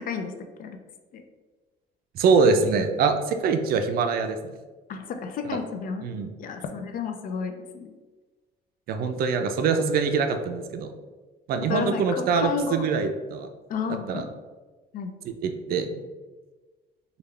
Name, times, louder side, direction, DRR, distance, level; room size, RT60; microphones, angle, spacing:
voice 1, 2.1-4.4 6.0-6.3 8.9-10.9 11.5-13.5 14.1-14.2 15.2-15.9, right 5 dB, 60° right, 7 dB, 0.4 m, -24 dB
voice 2, 4.9-6.1 6.4-7.9 11.7-12.9 13.7-14.2 14.9-15.2, left 5 dB, 55° left, 6 dB, 0.4 m, -31 dB
3.4 x 2.3 x 3.2 m, 1.3 s
cardioid pair, 110°, 17 cm